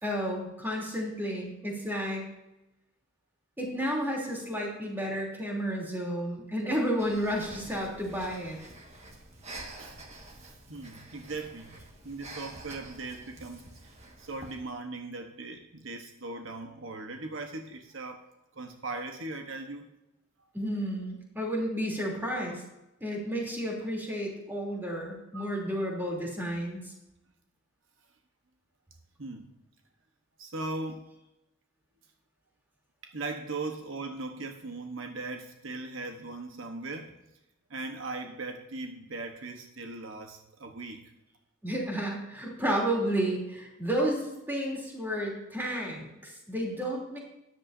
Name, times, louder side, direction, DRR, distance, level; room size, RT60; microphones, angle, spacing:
voice 1, 0.0-2.2 3.6-8.6 20.5-22.6 23.0-26.9 41.6-47.2, equal, 10° right, -2 dB, 3.1 m, -32 dB
Breathing, 7.0-14.7, right 2 dB, 35° right, 1.6 m, -47 dB
voice 2, 9.8-11.8 12.0-13.9 14.2-18.2 18.5-19.8 20.4-20.5 25.3-25.6 29.2-29.5 30.4-31.1 33.0-37.2 37.7-41.1, right 3 dB, 70° right, 5 dB, 1.1 m, -39 dB
13.5 x 10.5 x 2.7 m, 0.92 s
head